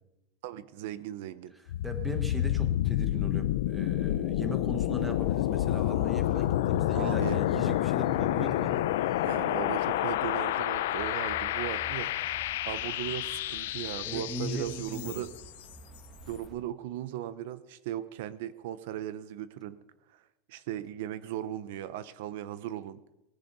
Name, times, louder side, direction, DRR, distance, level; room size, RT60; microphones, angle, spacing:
voice 1, 0.4-1.5 6.9-7.4 9.2-12.1 12.7-15.3 16.3-19.8 20.1-20.2 20.5-23.0, right 12 dB, 60° right, 16 dB, 0.7 m, -37 dB
voice 2, 1.6-8.9 9.4-9.6 14.0-15.2, equal, 5° right, 7 dB, 1.3 m, -38 dB
sound 1, 1.7-15.5, left 14 dB, 85° left, 0.6 m, -29 dB
sound 2, 5.0-16.5, right 1 dB, 25° right, 1.9 m, -51 dB
19.0 x 10.5 x 5.4 m, 0.92 s
supercardioid pair, 180°, 0 cm